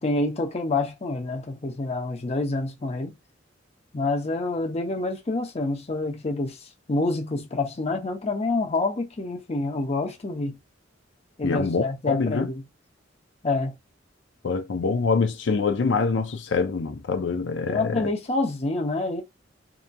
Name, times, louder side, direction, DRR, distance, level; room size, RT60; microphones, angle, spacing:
voice 1, 0.0-3.2 3.9-6.6 6.9-10.6 11.4-12.6 13.4-13.8 17.7-19.2, left 2 dB, 35° left, 0.6 m, -27 dB
voice 2, 11.4-12.5 14.4-18.1, left 4 dB, 70° left, 0.5 m, -25 dB
2.8 x 2.5 x 2.2 m
head